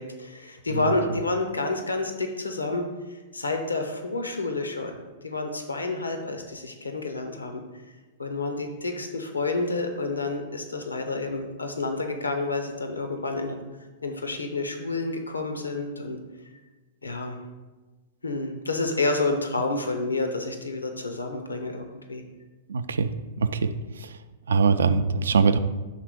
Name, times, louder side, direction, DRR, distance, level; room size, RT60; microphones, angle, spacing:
voice 1, 0.0-2.8 3.1-4.9 5.2-7.6 8.2-13.6 14.0-16.2 17.0-17.4 18.2-22.2, left 3 dB, 90° left, 5 dB, 0.6 m, -29 dB
voice 2, 22.7-23.1 23.4-23.7 24.5-25.6, right 5 dB, 75° right, 11 dB, 0.3 m, -22 dB
5.7 x 3.6 x 4.8 m, 1.2 s
hypercardioid pair, 105°, 0 cm